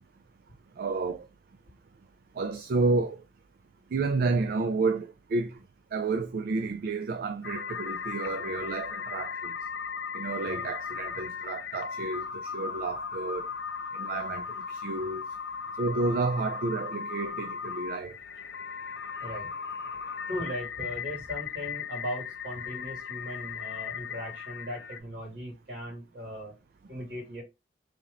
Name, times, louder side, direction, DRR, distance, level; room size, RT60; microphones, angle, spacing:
voice 1, 0.8-1.3 2.4-3.2 3.9-5.6 5.9-9.5 10.1-13.5 13.9-15.3 15.8-18.2, right 3 dB, 55° right, 0.3 m, -30 dB
sound 1, 7.4-25.0, left 6 dB, 60° left, 0.5 m, -37 dB
voice 2, 19.2-19.5 20.3-26.6 26.9-27.4, equal, 70° right, 2.1 m, -38 dB
3.0 x 2.8 x 3.8 m
head